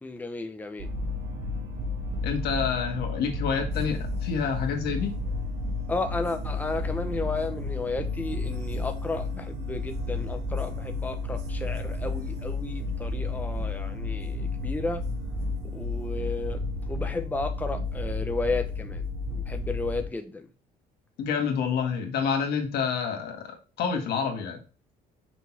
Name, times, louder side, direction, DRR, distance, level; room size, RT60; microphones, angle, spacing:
voice 1, 0.0-0.9 5.9-15.0 15.7-19.0 19.3-20.5, left 3 dB, 10° left, 0.8 m, -33 dB
sound 1, 0.8-20.0, left 2 dB, 85° right, 2.0 m, -32 dB
voice 2, 2.2-5.1 21.2-24.6, left 6 dB, 70° left, 1.9 m, -28 dB
6.0 x 3.9 x 6.0 m
cardioid pair, 110°, 17 cm